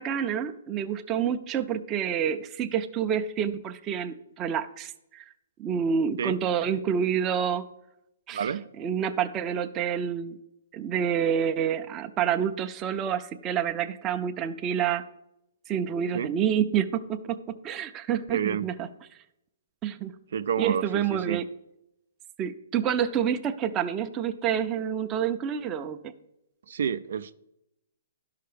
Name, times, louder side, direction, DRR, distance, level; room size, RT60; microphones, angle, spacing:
voice 1, 0.0-5.2 5.6-7.6 8.3-10.4 10.7-15.0 15.7-18.9 19.8-20.1 20.6-21.5 22.4-26.1, right 8 dB, 20° right, 7 dB, 0.6 m, -28 dB
voice 2, 8.3-8.6 16.1-16.3 18.3-18.7 20.3-21.4 26.7-27.3, right 8 dB, 70° right, 12 dB, 0.4 m, -29 dB
12.0 x 5.7 x 5.1 m, 0.84 s
hypercardioid pair, 150°, 0 cm